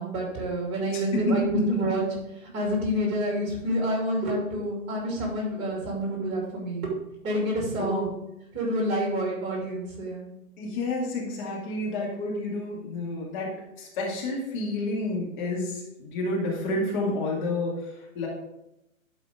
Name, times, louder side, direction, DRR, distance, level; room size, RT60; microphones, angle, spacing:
voice 1, 0.0-2.0 2.4-6.9 7.2-8.1 8.5-10.3, equal, 25° right, -2 dB, 2.7 m, -28 dB
voice 2, 0.9-1.9 7.8-8.1 10.6-18.3, left 2 dB, 35° left, -3 dB, 2.1 m, -29 dB
11.0 x 4.9 x 3.6 m, 0.87 s
figure-of-eight pair, 120°, 41 cm